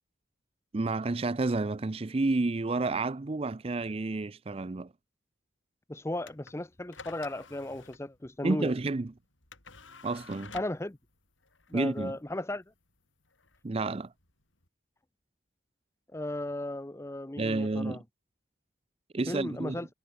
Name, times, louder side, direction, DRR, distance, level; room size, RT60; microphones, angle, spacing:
voice 1, 0.7-4.9 8.4-9.1 10.0-10.5 11.7-12.2 13.6-14.1 17.4-18.0 19.1-19.8, right 3 dB, 30° right, 0.5 m, -30 dB
voice 2, 5.9-8.7 10.5-11.0 11.7-12.6 16.1-18.0 19.3-19.9, left 1 dB, 15° left, 0.7 m, -35 dB
sound 1, 6.2-14.7, left 4 dB, 90° left, 7.0 m, -52 dB
head